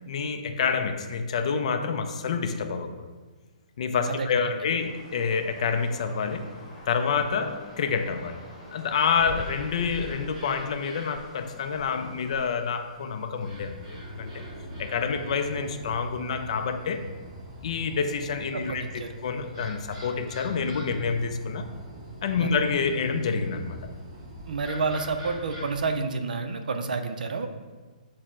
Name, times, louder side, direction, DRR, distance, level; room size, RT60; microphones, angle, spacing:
voice 1, 0.1-3.1 3.8-6.5 6.9-8.4 8.7-14.5 14.8-17.1 17.6-21.7 22.2-23.9, left 5 dB, 50° left, 7 dB, 0.4 m, -28 dB
voice 2, 4.1-4.6 18.5-19.1 22.4-22.5 24.5-27.5, right 4 dB, 75° right, 8 dB, 0.4 m, -29 dB
sound 1, 4.8-12.6, left 1 dB, 25° left, 0.9 m, -48 dB
sound 2, 8.9-26.0, right 1 dB, 35° right, 1.4 m, -42 dB
6.1 x 2.1 x 3.7 m, 1.3 s
hypercardioid pair, 165°, 4 cm